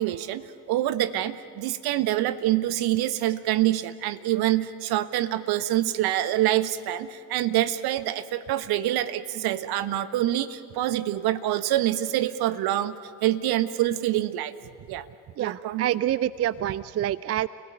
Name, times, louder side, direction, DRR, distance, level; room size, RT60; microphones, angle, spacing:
voice 1, 0.0-13.0 13.2-14.5 14.9-15.1 15.4-15.9, right 13 dB, 60° right, 14 dB, 1.3 m, -26 dB
voice 2, 15.4-17.5, right 12 dB, 35° right, 19 dB, 0.5 m, -27 dB
29.5 x 17.5 x 9.4 m, 2.5 s
hypercardioid pair, 60°, 43 cm